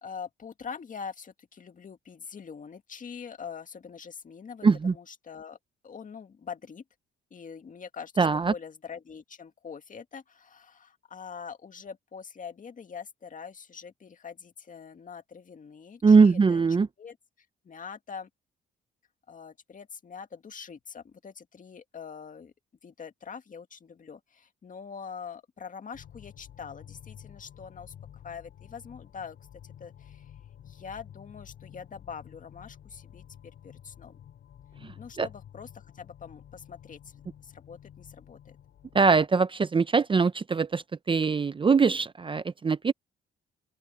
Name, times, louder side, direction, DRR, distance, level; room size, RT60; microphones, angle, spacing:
voice 1, 0.0-5.6 5.8-6.8 7.3-17.2 17.6-18.3 19.3-22.5 22.8-29.4 29.6-30.3 30.6-33.2 33.6-34.2 34.9-37.1 37.4-38.5, left 6 dB, 40° left, 2.1 m, -44 dB
voice 2, 4.6-4.9 8.2-8.5 16.0-16.9 35.2-35.3 38.9-42.9, right 5 dB, 25° right, 0.6 m, -22 dB
sound 1, 25.9-39.3, left 10 dB, 70° left, 5.1 m, -51 dB
open air
cardioid pair, 90°, 20 cm